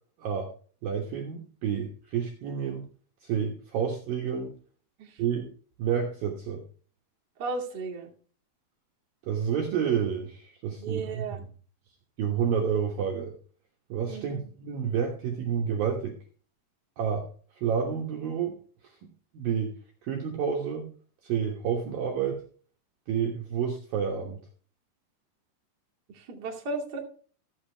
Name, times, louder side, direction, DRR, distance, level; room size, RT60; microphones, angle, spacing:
voice 1, 0.2-0.5 0.8-2.8 3.2-4.5 5.2-5.5 5.8-6.6 9.3-11.5 12.2-13.3 13.9-16.2 17.0-17.2 17.6-18.6 19.0-19.8 20.0-20.9 21.2-22.4 23.1-24.4, right 7 dB, 65° right, 0 dB, 2.4 m, -29 dB
voice 2, 7.4-8.1 10.7-11.4 14.1-14.4 26.1-27.0, right 3 dB, 35° right, -2 dB, 1.7 m, -35 dB
14.0 x 8.4 x 3.4 m, 0.42 s
omnidirectional pair, 5.6 m